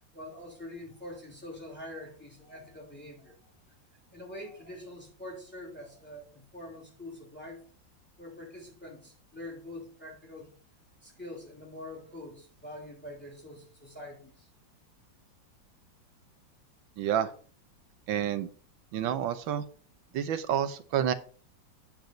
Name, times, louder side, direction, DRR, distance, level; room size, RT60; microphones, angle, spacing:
voice 1, 0.1-3.5 4.1-7.6 8.2-10.5 11.0-14.5, left 1 dB, 5° left, -2 dB, 3.2 m, -45 dB
voice 2, 17.0-17.3 18.1-18.5 18.9-19.6 20.1-21.1, right 9 dB, 85° right, 11 dB, 1.6 m, -29 dB
9.2 x 4.8 x 5.2 m, 0.43 s
omnidirectional pair, 2.1 m